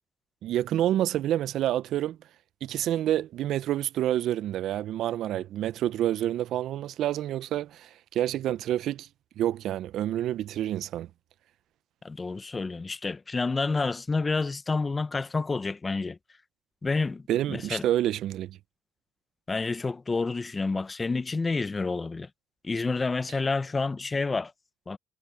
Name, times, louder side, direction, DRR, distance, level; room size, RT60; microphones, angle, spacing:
voice 1, 0.4-2.2 2.6-9.1 9.4-11.1 17.3-18.6, right 12 dB, 65° right, 0.7 m, -28 dB
voice 2, 12.0-16.2 16.8-17.8 19.5-22.3 22.6-24.5 24.9-25.0, left 3 dB, 25° left, 1.1 m, -29 dB
supercardioid pair, 70°, 0 cm